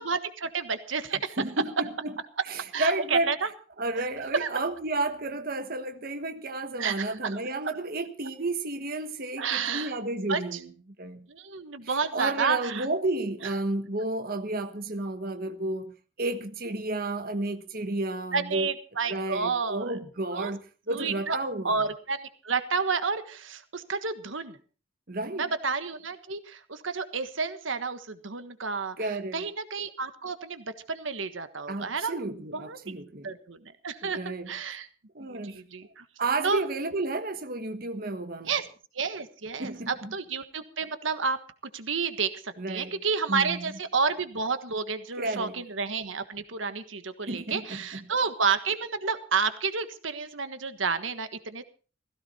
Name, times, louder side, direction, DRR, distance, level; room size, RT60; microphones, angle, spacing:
voice 1, 0.0-1.4 2.7-3.5 4.4-4.5 6.8-7.3 9.4-9.9 10.3-10.4 11.3-12.8 18.3-20.0 20.3-20.5 20.9-21.4 21.6-24.6 25.4-29.0 29.3-32.2 32.5-33.0 33.2-33.6 33.8-34.9 35.3-36.0 36.4-36.6 38.5-38.6 38.9-41.4 41.7-51.6, right 5 dB, 90° right, 1.4 m, -30 dB
voice 2, 1.4-2.1 2.4-3.3 3.8-10.7 11.0-11.3 11.8-18.7 19.0-21.8 25.1-25.5 29.0-29.5 31.7-33.4 34.0-34.5 35.1-35.6 36.2-38.5 39.6-40.1 42.6-43.0 43.3-43.7 45.2-45.6 47.3-48.1, right 2 dB, 50° right, 1.3 m, -32 dB
16.5 x 16.0 x 4.2 m
head